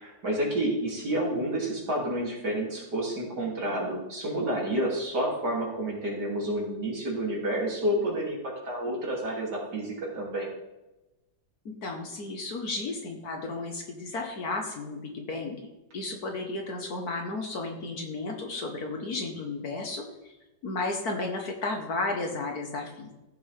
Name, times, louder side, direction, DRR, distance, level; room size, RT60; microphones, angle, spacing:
voice 1, 0.0-8.4 8.6-10.5, right 1 dB, 55° right, -4 dB, 3.6 m, -29 dB
voice 2, 11.7-15.6 15.9-20.0 20.6-23.1, left 3 dB, 55° left, 2 dB, 1.8 m, -33 dB
15.0 x 6.9 x 3.5 m, 0.99 s
omnidirectional pair, 2.0 m